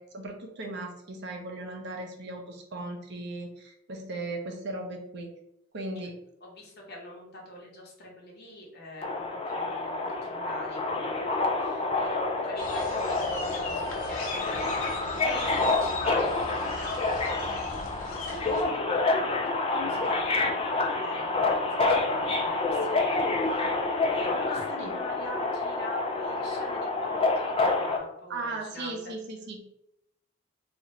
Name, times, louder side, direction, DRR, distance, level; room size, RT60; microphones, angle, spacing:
voice 1, 0.0-5.3 5.7-6.1 24.8-24.9 28.3-29.6, right 2 dB, 50° right, 2 dB, 0.6 m, -37 dB
voice 2, 6.4-23.7 24.1-29.0, left 1 dB, 50° left, -2 dB, 1.0 m, -44 dB
Subway metro underground, 9.0-28.0, left 3 dB, 25° left, 0.3 m, -28 dB
sound 1, 12.6-18.6, left 3 dB, 75° left, 0.8 m, -39 dB
2.7 x 2.5 x 4.2 m, 0.79 s
head